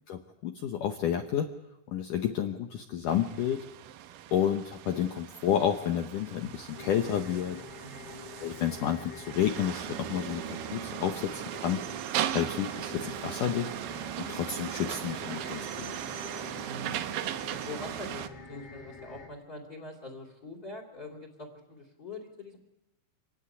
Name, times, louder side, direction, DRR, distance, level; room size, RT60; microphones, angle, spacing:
voice 1, 0.1-1.5 1.9-3.6 4.3-7.6 8.4-11.8 12.3-13.7 14.3-16.0, left 9 dB, 85° left, 6 dB, 1.8 m, -30 dB
sound 1, 3.1-18.3, right 12 dB, 85° right, 2.0 m, -38 dB
sound 2, 6.7-19.3, left 4 dB, 45° left, 2.6 m, -46 dB
voice 2, 7.8-8.2 16.6-17.1 17.4-22.6, left 2 dB, 25° left, 4 dB, 2.9 m, -44 dB
26.0 x 16.5 x 9.8 m, 0.97 s
omnidirectional pair, 5.4 m